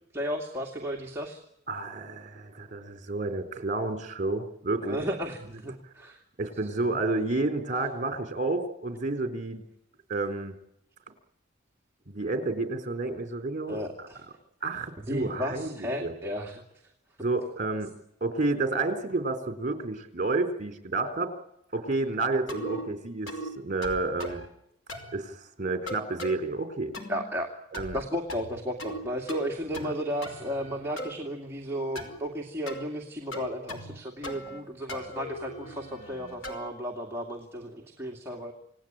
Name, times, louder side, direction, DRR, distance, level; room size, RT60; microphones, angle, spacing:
voice 1, 0.1-1.4 4.8-6.2 6.6-7.0 13.7-14.2 14.7-16.6 27.1-27.5 27.9-38.5, equal, 10° right, -1 dB, 2.5 m, -34 dB
voice 2, 1.7-5.0 6.4-9.6 10.1-10.6 12.1-13.8 14.6-16.1 17.2-17.9 18.2-21.3 21.7-24.4 25.1-26.9 27.7-28.0 29.8-29.9, right 3 dB, 40° right, 7 dB, 4.0 m, -30 dB
sound 1, 22.5-22.9 23.3-23.5 23.8-24.5 24.9-25.2 25.9-26.4 26.9-27.3 27.7-28.0 28.3-29.0 29.3-29.9 30.2-31.1 32.0-32.2 32.7-32.9 33.3-34.0 34.2-34.6 34.9-36.7, equal, 85° left, 5.0 m, -38 dB
28.5 x 18.5 x 9.0 m, 0.82 s
head